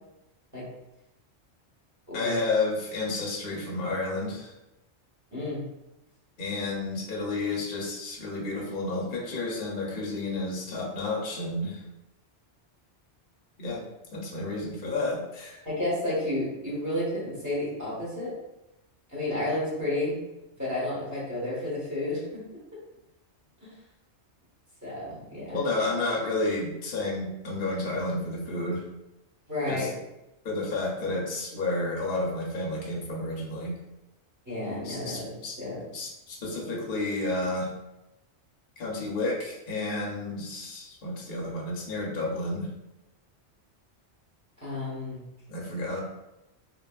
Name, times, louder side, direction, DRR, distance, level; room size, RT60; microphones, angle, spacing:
voice 1, 2.1-4.5 6.4-11.8 13.6-13.8 14.1-15.6 25.5-28.8 29.7-29.9 30.4-33.7 34.8-35.5 35.9-37.7 38.8-42.7 45.5-46.0, left 2 dB, 55° left, -3 dB, 0.8 m, -31 dB
voice 2, 15.6-18.3 19.1-20.2 20.6-22.4 23.6-23.7 24.8-25.6 29.5-29.9 34.4-35.3 35.6-35.8 44.6-45.2, left 1 dB, 15° right, -9 dB, 1.2 m, -31 dB
3.2 x 2.3 x 2.2 m, 0.93 s
omnidirectional pair, 1.2 m